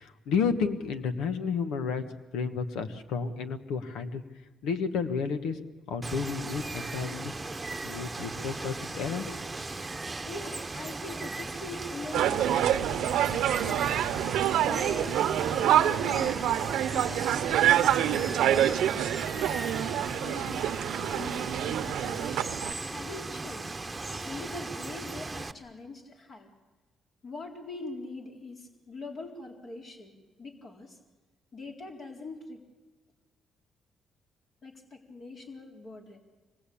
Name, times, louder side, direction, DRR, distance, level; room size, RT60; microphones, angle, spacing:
voice 1, 0.0-2.0 2.3-4.2 4.6-5.6 5.9-7.3 7.8-9.4, left 5 dB, 90° left, 9 dB, 1.6 m, -31 dB
Water, 6.0-25.5, right 3 dB, 15° right, 1.1 m, -37 dB
voice 2, 10.2-14.2 14.6-16.5 16.9-18.9 19.3-19.8 20.2-22.6 22.9-23.7 24.2-26.5 27.2-30.1 30.4-31.0 31.5-32.6 34.6-36.2, left 3 dB, 55° left, 1 dB, 4.1 m, -43 dB
sound 1, 12.1-22.7, right 11 dB, 85° right, 0.9 m, -26 dB
25.5 x 20.0 x 8.7 m, 1.3 s
cardioid pair, 90°, 0 cm